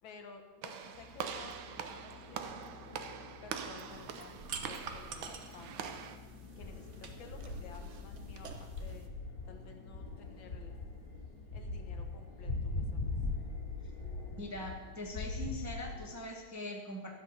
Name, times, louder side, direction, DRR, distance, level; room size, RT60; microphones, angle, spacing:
voice 1, 0.0-2.9 3.4-6.2 6.6-9.1 9.5-10.8 11.5-13.2, left 5 dB, 75° left, 5 dB, 2.0 m, -54 dB
Walk footsteps / Slam, 0.6-6.2, right 7 dB, 80° right, 1.6 m, -43 dB
sound 1, 0.9-16.1, left 3 dB, 45° left, 5.5 m, -42 dB
sound 2, 3.9-9.1, right 5 dB, 50° right, 1.0 m, -48 dB
voice 2, 14.4-17.1, left 1 dB, 10° right, 0 dB, 1.0 m, -42 dB
12.5 x 7.8 x 6.4 m, 1.3 s
omnidirectional pair, 2.2 m